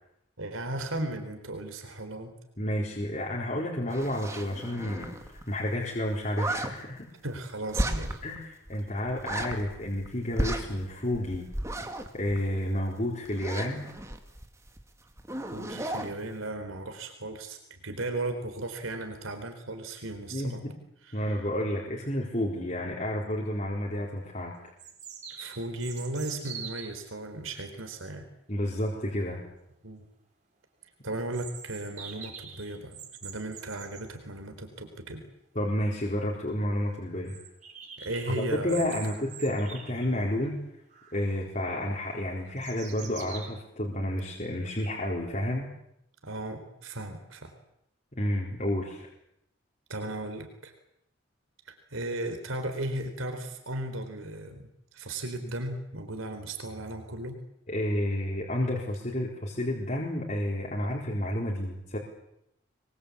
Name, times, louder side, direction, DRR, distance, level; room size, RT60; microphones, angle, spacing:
voice 1, 0.4-2.3 7.2-8.2 15.5-20.6 21.0-21.4 25.3-28.3 29.8-30.0 31.0-35.2 38.0-38.9 46.2-47.5 49.9-50.7 51.7-57.4 60.8-61.0, right 2 dB, 90° right, 6 dB, 4.2 m, -36 dB
voice 2, 2.6-7.1 8.2-11.5 12.1-13.8 20.3-20.7 21.1-24.7 28.5-29.4 35.5-37.4 38.3-40.6 41.1-45.7 48.2-49.1 57.7-62.0, left 1 dB, 35° left, -3 dB, 4.3 m, -30 dB
sound 1, 3.9-5.4 5.7-5.8 6.0-6.7 7.7-8.4 8.7-8.8 9.1-10.1 10.3-12.9 13.3-14.8 15.1-16.1, right 1 dB, 15° right, 2.3 m, -34 dB
sound 2, 23.8-23.9 24.8-27.0 31.3-34.1 35.7-35.8 36.1-36.2 36.5-36.6 37.3-40.5 40.9-41.4 41.9-43.5, right 7 dB, 35° right, 5.2 m, -44 dB
26.5 x 22.5 x 8.5 m, 0.79 s
head